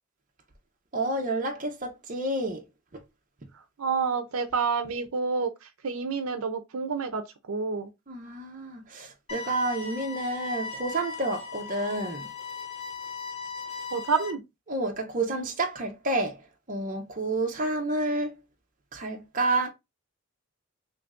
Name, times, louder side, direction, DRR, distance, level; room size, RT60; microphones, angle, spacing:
voice 1, 0.9-2.6 2.9-3.0 8.1-12.3 14.7-16.4 16.7-18.3 18.9-19.7, right 2 dB, 40° right, 0.7 m, -29 dB
voice 2, 3.5-7.9 13.9-14.4, right 5 dB, 90° right, 0.6 m, -29 dB
sound 1, 9.3-14.3, left 5 dB, 30° left, 0.5 m, -38 dB
3.1 x 2.6 x 3.5 m
head